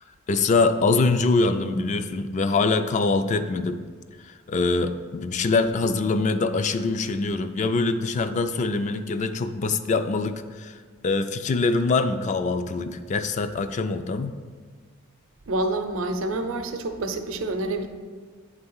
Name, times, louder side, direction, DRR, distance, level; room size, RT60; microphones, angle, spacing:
voice 1, 0.3-3.8 4.2-10.8 11.0-14.4, left 3 dB, 35° left, 10 dB, 0.3 m, -24 dB
voice 2, 15.5-17.9, right 2 dB, 70° right, 7 dB, 0.6 m, -27 dB
8.8 x 3.4 x 5.5 m, 1.5 s
head